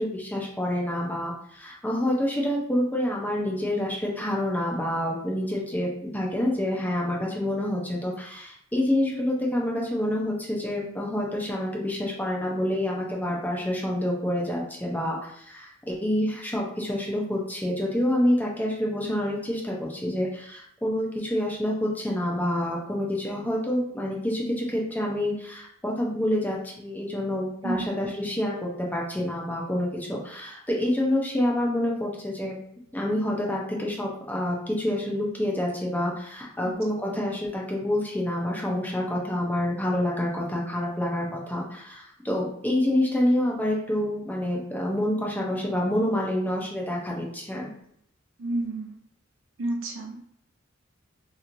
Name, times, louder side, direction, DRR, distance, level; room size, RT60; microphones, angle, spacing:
voice 1, 0.0-32.6 32.9-47.7, left 1 dB, 10° left, -3 dB, 0.6 m, -27 dB
voice 2, 48.4-49.0 49.6-50.4, right 2 dB, 85° right, 1 dB, 0.6 m, -30 dB
2.9 x 2.7 x 2.6 m, 0.69 s
head